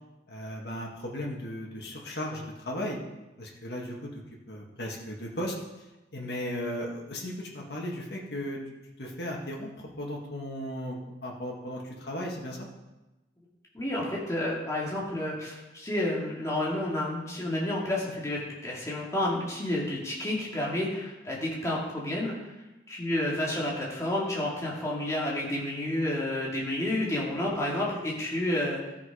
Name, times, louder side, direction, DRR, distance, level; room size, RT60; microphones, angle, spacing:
voice 1, 0.3-3.0 3.4-4.1 4.5-5.5 6.1-8.6 9.0-9.7 10.0-12.7, equal, 65° left, -1 dB, 1.9 m, -36 dB
voice 2, 13.7-22.3 22.9-28.8, left 1 dB, 15° left, -5 dB, 2.3 m, -30 dB
13.5 x 6.1 x 5.0 m, 1.0 s
head